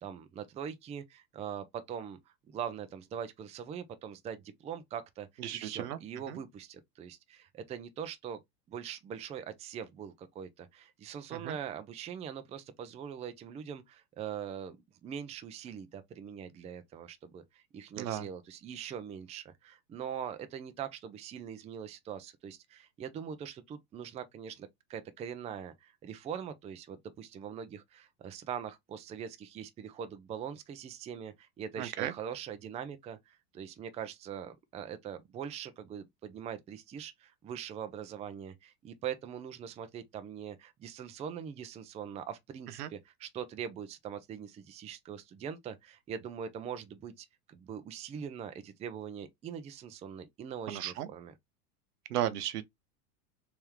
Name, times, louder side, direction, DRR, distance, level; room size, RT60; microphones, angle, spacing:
voice 1, 0.0-2.2 2.5-8.4 8.7-51.3, right 8 dB, 15° right, 0.4 m, -42 dB
voice 2, 5.4-6.0 6.3-6.4 11.4-11.6 18.0-18.3 31.8-32.1 42.8-42.9 50.7-51.1 52.1-52.6, right 12 dB, 75° right, 0.8 m, -34 dB
3.5 x 3.3 x 2.9 m
hypercardioid pair, 100°, 46 cm